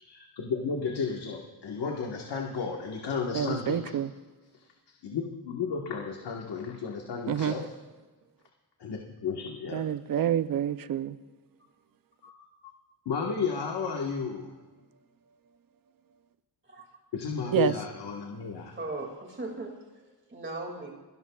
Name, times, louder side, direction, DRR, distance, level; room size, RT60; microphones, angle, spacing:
voice 1, 0.0-3.9 5.0-7.7 8.8-9.8 12.2-12.3 12.6-12.7 13.0-14.5 17.1-18.7, left 5 dB, 80° left, 0 dB, 1.5 m, -33 dB
voice 2, 3.3-4.1 7.3-7.6 9.7-11.2 17.5-17.7, right 9 dB, 55° right, 13 dB, 0.6 m, -28 dB
voice 3, 18.6-20.9, right 2 dB, 30° right, 1 dB, 2.4 m, -39 dB
29.5 x 12.5 x 2.4 m, 1.3 s
wide cardioid pair, 150°, 40 cm